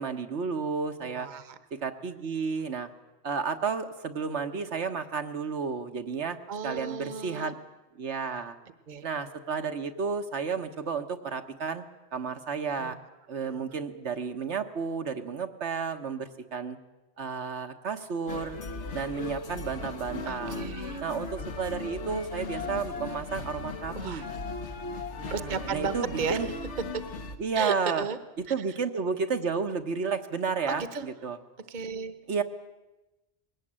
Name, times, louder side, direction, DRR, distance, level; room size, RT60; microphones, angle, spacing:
voice 1, 0.0-1.3 1.7-2.9 3.2-6.4 6.6-7.5 7.9-8.6 9.0-11.8 12.1-13.0 13.3-16.8 17.2-18.6 18.9-20.7 21.0-24.3 25.2-26.5 27.4-28.0 28.5-31.4 32.3-32.4, right 5 dB, 80° right, 6 dB, 1.5 m, -32 dB
voice 2, 1.0-1.6 6.5-7.5 8.9-9.1 12.8-13.0 13.5-13.6 20.3-21.0 23.9-24.3 25.3-26.5 26.9-27.0 27.5-28.2 28.5-28.6 30.7-31.0 31.7-32.1, right 6 dB, 45° right, 11 dB, 1.1 m, -34 dB
sound 1, 18.3-27.4, left 3 dB, 90° left, 1.8 m, -37 dB
20.5 x 17.5 x 8.8 m, 1.0 s
omnidirectional pair, 1.1 m